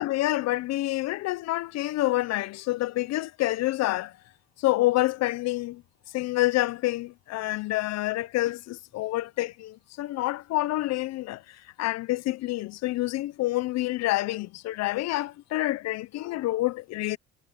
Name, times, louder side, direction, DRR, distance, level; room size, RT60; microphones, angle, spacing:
voice 1, 0.0-4.1 4.6-5.8 6.1-17.2, left 17 dB, 60° left, 0.6 m, -28 dB
cardioid pair, 150°, 30 cm